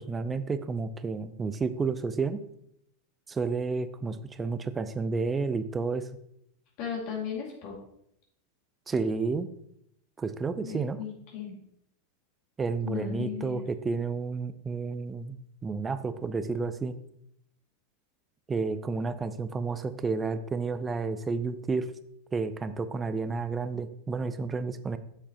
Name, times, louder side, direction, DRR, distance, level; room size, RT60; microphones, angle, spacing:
voice 1, 0.0-2.4 3.3-6.1 8.9-9.5 10.2-11.0 12.6-17.0 18.5-21.9 22.3-25.0, right 4 dB, 20° right, 12 dB, 0.5 m, -31 dB
voice 2, 6.8-7.7 10.6-11.6 12.8-13.6, left 7 dB, 55° left, -2 dB, 2.1 m, -36 dB
7.3 x 6.6 x 2.9 m, 0.74 s
hypercardioid pair, 95°, 0 cm